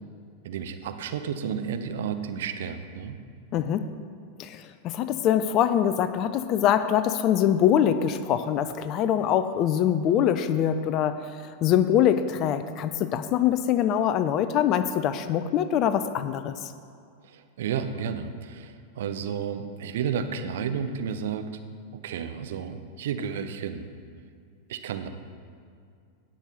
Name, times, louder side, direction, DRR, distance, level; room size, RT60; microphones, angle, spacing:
voice 1, 0.4-3.2 17.2-21.5 21.9-23.9 24.7-25.1, right 7 dB, 55° right, 8 dB, 0.7 m, -32 dB
voice 2, 3.5-3.9 4.4-11.2 11.6-16.7, left 10 dB, 35° left, 11 dB, 0.4 m, -24 dB
17.0 x 6.3 x 4.0 m, 2.3 s
figure-of-eight pair, 90°, 0 cm